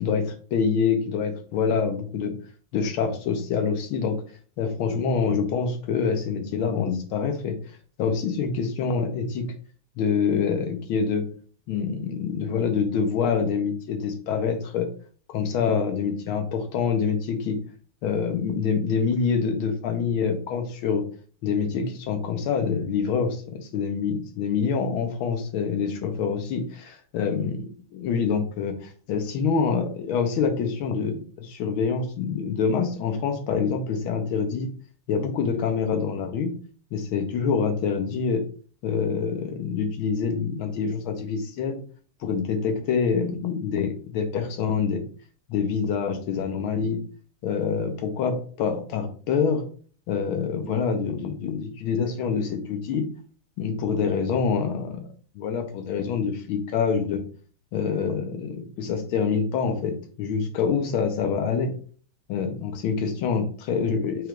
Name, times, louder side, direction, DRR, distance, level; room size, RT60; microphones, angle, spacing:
voice 1, 0.0-2.3 2.7-4.2 4.6-7.6 8.0-9.4 10.0-11.3 11.7-14.9 15.3-17.6 18.0-21.0 21.4-27.7 27.9-34.7 35.1-36.5 36.9-38.4 38.8-41.8 42.2-45.0 45.5-47.0 47.4-49.6 50.1-53.1 53.6-55.1 55.3-57.2 57.7-61.7 62.3-64.3, left 6 dB, 90° left, 5 dB, 1.7 m, -26 dB
5.9 x 3.6 x 2.4 m, 0.43 s
omnidirectional pair, 2.2 m